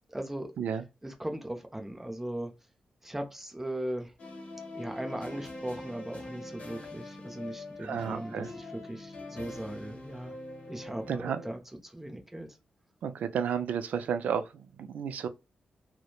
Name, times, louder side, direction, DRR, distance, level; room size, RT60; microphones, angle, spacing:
voice 1, 0.1-0.5 1.0-2.5 3.0-4.1 4.7-10.3 10.7-12.5, right 1 dB, 10° right, 0.6 m, -38 dB
sound 1, 4.2-11.6, left 2 dB, 55° left, 0.8 m, -43 dB
voice 2, 7.8-8.5 11.1-11.5 13.0-15.3, right 7 dB, 80° right, 0.3 m, -32 dB
2.8 x 2.1 x 2.2 m
cardioid pair, 100°, 3 cm